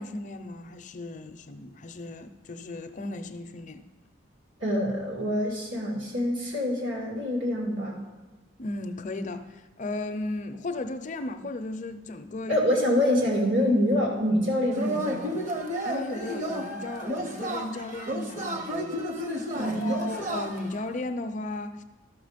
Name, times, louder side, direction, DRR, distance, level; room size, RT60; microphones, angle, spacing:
voice 1, 0.0-3.8 8.6-12.6 15.8-19.1 19.6-21.8, left 2 dB, 40° left, 9 dB, 0.5 m, -35 dB
voice 2, 4.6-8.1 12.5-15.4 19.5-20.1, left 1 dB, 85° right, -1 dB, 2.6 m, -26 dB
Yell / Cheering, 14.7-20.8, right 1 dB, 40° right, 0.9 m, -32 dB
12.5 x 6.1 x 5.1 m, 1.2 s
head